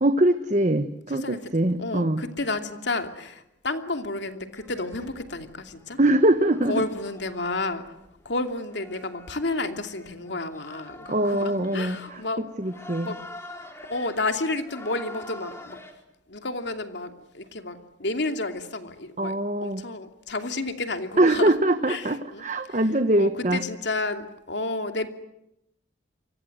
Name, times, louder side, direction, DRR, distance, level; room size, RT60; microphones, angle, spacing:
voice 1, 0.0-2.2 6.0-6.8 11.1-13.2 19.2-19.8 21.2-23.6, right 1 dB, 40° right, 9 dB, 1.3 m, -23 dB
voice 2, 1.8-6.0 6.7-7.8 8.2-12.4 13.0-13.2 13.9-15.8 16.3-19.3 19.6-21.5 21.9-22.4 23.2-25.1, left 2 dB, 70° left, 6 dB, 2.8 m, -31 dB
sound 1, 4.5-15.9, left 2 dB, 15° left, 4.3 m, -46 dB
29.0 x 24.5 x 7.9 m, 0.84 s
head